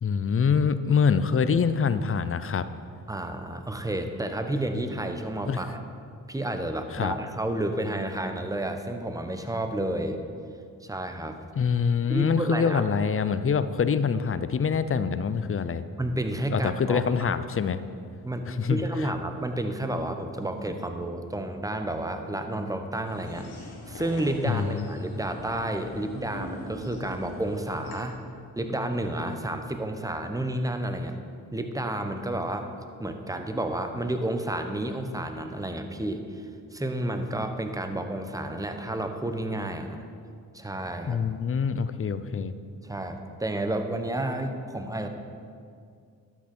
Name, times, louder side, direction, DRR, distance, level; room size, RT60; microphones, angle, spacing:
voice 1, 0.0-2.7 5.5-5.6 6.9-7.1 11.6-15.8 16.5-17.8 18.5-19.1 24.4-24.9 41.1-42.5, left 6 dB, 35° left, 13 dB, 0.5 m, -25 dB
voice 2, 3.1-5.8 6.3-10.2 10.8-11.4 12.1-12.8 16.0-17.3 18.2-28.1 28.5-31.1 31.5-32.7 33.0-40.0 40.5-41.2 42.8-45.1, right 1 dB, 10° right, 6 dB, 0.9 m, -31 dB
sound 1, 23.0-28.0, left 3 dB, 80° left, 1.2 m, -41 dB
12.0 x 6.0 x 4.4 m, 2.3 s
supercardioid pair, 45°, 38 cm